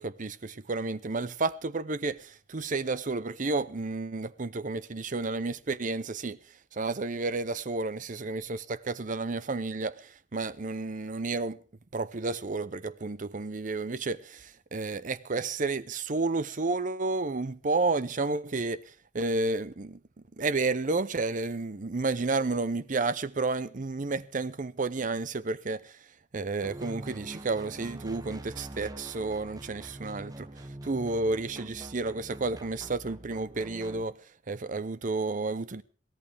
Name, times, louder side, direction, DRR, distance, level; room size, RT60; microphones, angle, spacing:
voice 1, 0.0-6.4 6.8-11.6 11.9-18.8 19.1-20.0 20.4-25.9 26.3-30.5 30.8-34.1 34.5-35.8, right 3 dB, 45° right, 0.7 m, -31 dB
sound 1, 26.6-34.0, right 1 dB, 20° right, 0.9 m, -44 dB
22.5 x 16.5 x 3.5 m
head